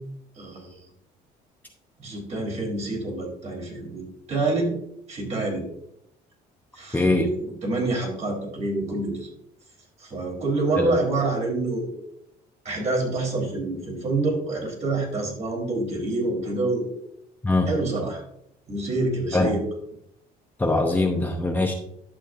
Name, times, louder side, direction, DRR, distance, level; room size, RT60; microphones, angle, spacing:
voice 1, 0.4-0.8 2.0-4.7 5.1-5.6 6.8-9.3 10.0-11.9 12.7-16.9 17.7-18.2 18.7-19.6, right 2 dB, 40° right, -1 dB, 3.4 m, -27 dB
voice 2, 6.9-7.3 10.8-10.9 17.4-17.7 19.3-19.5 20.6-21.7, left 2 dB, 10° left, 2 dB, 0.8 m, -22 dB
11.5 x 6.7 x 2.5 m, 0.74 s
cardioid pair, 110°, 17 cm